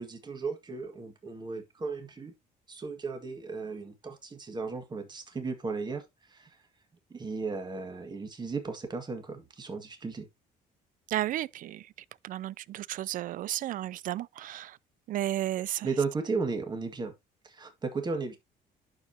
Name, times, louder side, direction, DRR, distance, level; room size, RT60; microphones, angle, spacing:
voice 1, 0.0-2.3 2.7-6.6 7.1-10.3 15.8-17.1 17.4-18.4, right 4 dB, 25° right, 1.8 m, -35 dB
voice 2, 11.1-11.9 12.2-14.8 15.1-15.9, right 13 dB, 55° right, 0.4 m, -33 dB
11.5 x 4.7 x 2.8 m
cardioid pair, 110°, 17 cm